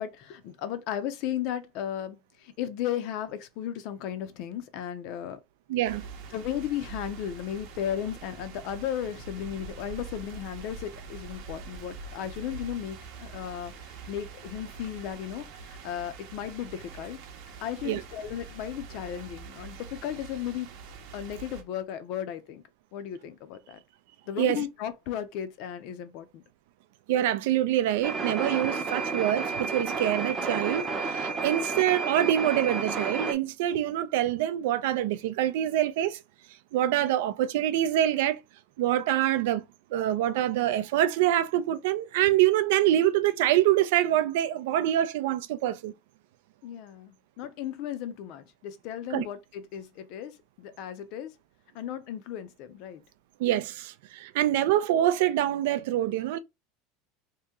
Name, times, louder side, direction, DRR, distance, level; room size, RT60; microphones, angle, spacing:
voice 1, 0.0-5.4 6.3-17.2 17.6-20.7 21.1-22.6 22.9-23.8 24.3-26.4 46.6-51.3 51.7-53.0 54.5-54.6, left 10 dB, 45° left, 0.5 m, -35 dB
voice 2, 5.7-6.0 17.8-18.0 24.4-24.6 27.1-36.2 36.7-38.4 38.8-39.6 39.9-45.9 49.1-49.2 53.4-56.4, right 12 dB, 70° right, 0.4 m, -25 dB
sound 1, 5.8-21.6, right 5 dB, 50° right, 0.8 m, -44 dB
sound 2, 28.0-33.3, right 4 dB, 20° right, 0.7 m, -31 dB
2.9 x 2.7 x 3.6 m
supercardioid pair, 170°, 0 cm